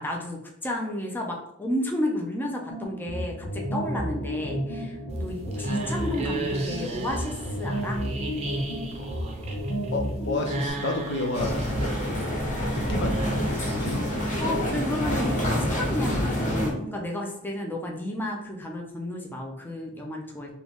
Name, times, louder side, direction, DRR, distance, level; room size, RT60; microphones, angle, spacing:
voice 1, 0.0-8.0 14.4-20.5, left 1 dB, 10° left, 0 dB, 0.6 m, -32 dB
sound 1, 2.7-10.7, equal, 90° left, 1.2 m, -31 dB
sound 2, 5.1-14.2, right 2 dB, 30° right, 0.7 m, -37 dB
voice 2, 9.9-11.6 12.0-12.5 12.7-14.4, left 2 dB, 60° left, 3 dB, 0.6 m, -31 dB
sound 3, 11.3-16.7, equal, 40° left, 1.3 m, -27 dB
3.8 x 3.0 x 3.6 m, 0.74 s
head